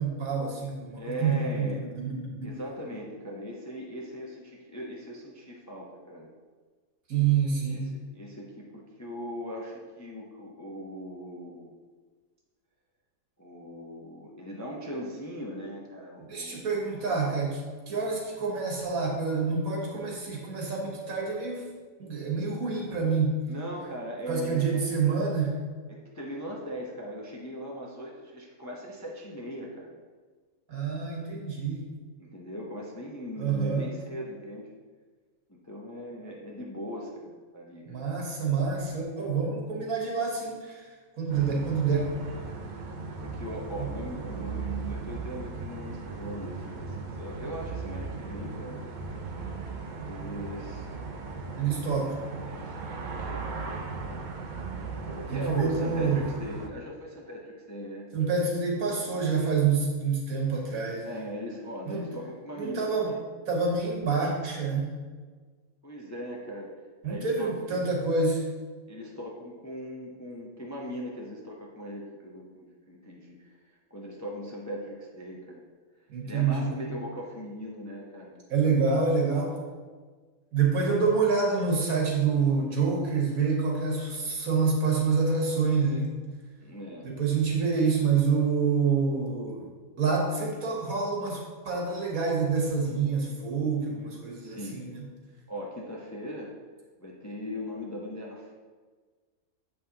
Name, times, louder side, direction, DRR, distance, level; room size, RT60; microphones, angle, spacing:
voice 1, 0.0-2.5 7.1-7.9 16.3-17.6 17.9-21.7 22.0-23.4 24.3-25.6 30.7-31.9 33.4-33.9 37.9-40.8 41.2-42.1 43.8-43.9 51.6-52.2 55.3-56.2 58.1-61.2 61.9-62.0 62.6-63.1 63.5-64.9 67.0-68.4 76.1-76.8 78.5-79.5 80.5-86.1 87.0-89.6 90.0-95.0, right 5 dB, 80° right, -1 dB, 1.7 m, -27 dB
voice 2, 1.0-1.9 2.4-6.3 7.4-11.7 13.4-16.7 23.5-25.0 25.9-30.0 32.2-34.7 35.5-38.0 43.2-48.8 50.0-50.9 51.6-52.2 52.5-54.3 55.0-58.1 61.0-63.2 65.8-66.7 67.0-67.5 68.9-73.6 73.9-75.6 76.2-78.4 80.8-81.0 86.6-87.1 94.4-94.8 95.5-96.5 97.0-98.5, equal, 20° left, -2 dB, 0.5 m, -39 dB
sound 1, 41.3-56.7, right 4 dB, 60° right, 0.5 m, -37 dB
7.5 x 5.6 x 2.8 m, 1.5 s
omnidirectional pair, 1.5 m